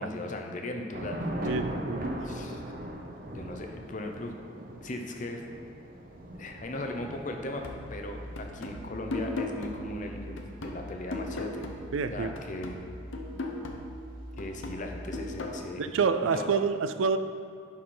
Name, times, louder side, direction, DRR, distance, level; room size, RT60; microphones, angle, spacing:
voice 1, 0.0-1.6 2.2-2.8 3.3-4.3 4.8-5.4 6.3-7.6 7.9-11.6 12.1-12.8 14.4-15.9 16.3-16.5, left 1 dB, 40° left, 3 dB, 0.7 m, -38 dB
Thunder / Rain, 0.9-13.4, right 1 dB, 45° right, 0.6 m, -41 dB
voice 2, 1.4-2.0 11.9-12.3 15.8-17.2, right 5 dB, 85° right, 10 dB, 0.4 m, -27 dB
sound 1, 7.6-12.1 12.4-15.6, left 2 dB, 80° left, 0.8 m, -38 dB
11.0 x 4.3 x 3.9 m, 2.5 s
head